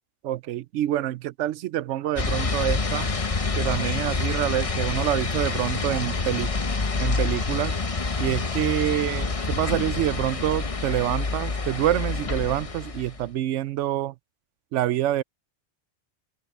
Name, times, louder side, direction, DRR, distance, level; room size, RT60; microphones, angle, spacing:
voice 1, 0.2-3.1 3.6-6.5 7.0-7.7 8.2-14.1 14.7-15.2, right 13 dB, 85° right, 0.9 m, -26 dB
sound 1, 2.2-13.3, left 3 dB, 30° left, 1.0 m, -27 dB
open air
omnidirectional pair, 1.2 m